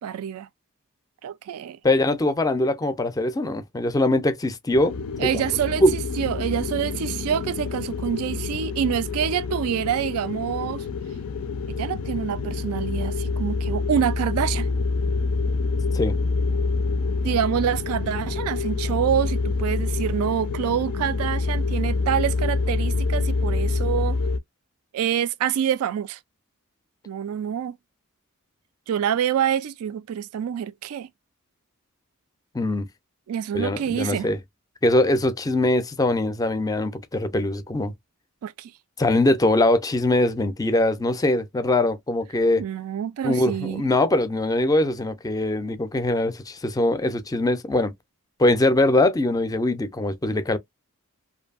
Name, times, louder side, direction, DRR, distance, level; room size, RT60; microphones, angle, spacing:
voice 1, 0.0-0.5 1.2-1.8 5.2-10.9 11.7-14.7 17.2-24.2 24.9-26.2 27.1-27.7 28.9-31.1 33.3-34.3 38.4-38.7 42.6-43.8, right 9 dB, 70° right, 0.3 m, -26 dB
voice 2, 1.8-4.9 5.2-5.3 5.8-5.9 15.9-16.2 32.5-32.9 33.5-34.4 34.8-37.9 39.0-42.6 43.2-47.9 48.4-50.6, left 1 dB, 15° left, 0.4 m, -22 dB
sound 1, 4.7-24.4, left 3 dB, 75° left, 0.4 m, -27 dB
2.6 x 2.6 x 2.3 m
head